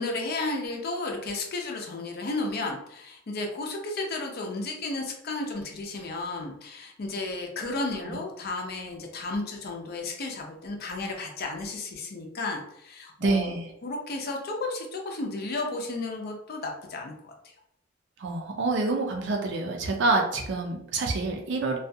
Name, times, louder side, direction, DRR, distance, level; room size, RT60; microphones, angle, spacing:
voice 1, 0.0-13.5 13.8-17.1, left 2 dB, 55° left, 2 dB, 0.5 m, -33 dB
voice 2, 13.2-13.7 18.2-21.8, right 3 dB, 65° right, 2 dB, 0.5 m, -27 dB
2.3 x 2.2 x 2.6 m, 0.75 s
head